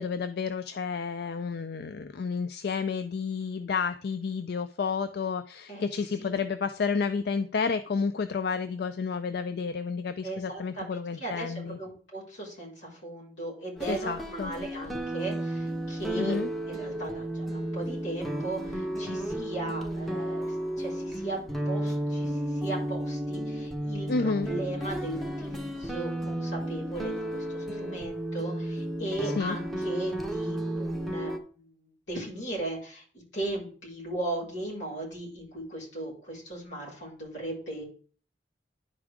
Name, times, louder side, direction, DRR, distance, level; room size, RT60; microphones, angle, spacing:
voice 1, 0.0-11.8 13.9-14.5 16.2-16.5 24.1-24.5 29.4-29.6, left 5 dB, 60° left, 11 dB, 0.4 m, -31 dB
voice 2, 10.2-16.4 16.7-21.4 21.6-33.0 33.3-37.8, right 2 dB, 80° left, -6 dB, 4.7 m, -37 dB
sound 1, 13.8-31.4, right 1 dB, ahead, 0.8 m, -33 dB
10.5 x 5.0 x 3.6 m, 0.43 s
head